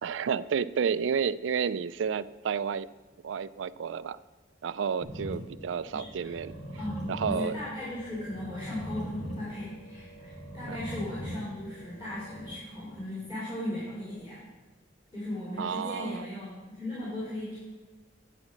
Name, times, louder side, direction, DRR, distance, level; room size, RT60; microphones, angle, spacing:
voice 1, 0.0-2.9 3.2-4.2 4.6-6.6 7.1-7.6 10.7-10.8 15.6-16.3, right 6 dB, 70° right, 16 dB, 0.4 m, -31 dB
sound 1, 5.0-13.0, equal, 65° left, 3.5 m, -41 dB
voice 2, 5.9-6.3 6.7-14.4 15.1-17.5, left 1 dB, 25° left, -9 dB, 3.9 m, -37 dB
10.5 x 4.9 x 7.2 m, 1.2 s
head